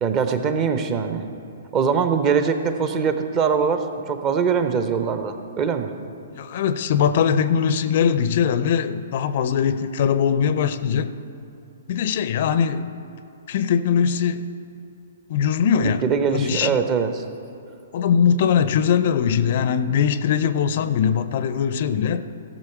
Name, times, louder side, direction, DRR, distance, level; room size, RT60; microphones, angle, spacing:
voice 1, 0.0-1.2 1.7-5.9 15.8-17.2, right 6 dB, 25° right, 8 dB, 0.8 m, -22 dB
voice 2, 6.3-11.1 11.9-12.9 13.5-14.5 15.3-16.0 16.3-16.7 17.9-22.3, left 7 dB, 45° left, 12 dB, 0.5 m, -21 dB
16.5 x 6.5 x 4.6 m, 2.9 s
figure-of-eight pair, 120°, 0 cm